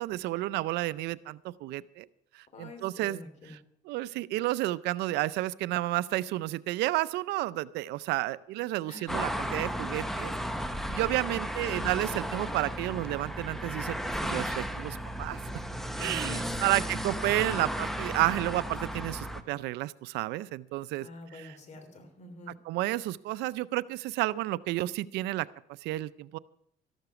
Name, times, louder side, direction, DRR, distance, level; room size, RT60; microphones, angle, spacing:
voice 1, 0.0-2.1 2.3-3.2 3.9-10.3 10.9-14.0 14.2-15.4 16.0-21.1 22.7-25.5 25.8-26.4, right 17 dB, 85° right, 17 dB, 0.5 m, -31 dB
voice 2, 2.5-3.6 8.9-9.3 11.6-11.9 15.9-17.0 21.0-22.5, left 2 dB, 45° left, 7 dB, 3.1 m, -46 dB
sound 1, 9.1-19.4, equal, ahead, 1.0 m, -34 dB
13.5 x 12.0 x 5.9 m, 0.70 s
cardioid pair, 110°, 17 cm